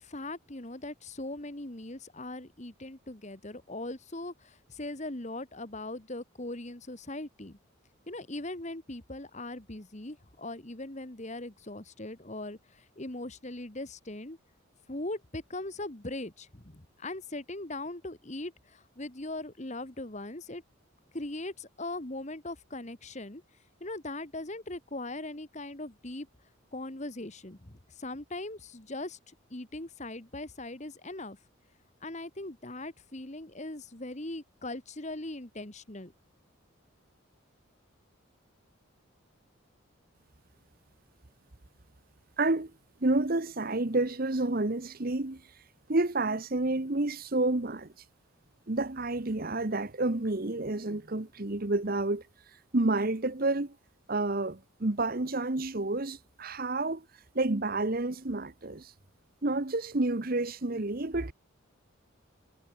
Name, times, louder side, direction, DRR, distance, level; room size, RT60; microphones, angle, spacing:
voice 1, 0.0-7.6 8.1-14.4 14.9-20.6 21.1-23.4 23.8-26.3 26.7-31.4 32.0-36.1, left 2 dB, 35° left, 1.7 m, -40 dB
voice 2, 42.4-42.7 43.0-45.4 45.9-47.9 48.7-52.2 52.7-53.7 54.1-57.0 57.3-58.9 59.4-61.3, right 2 dB, 45° right, 1.1 m, -29 dB
head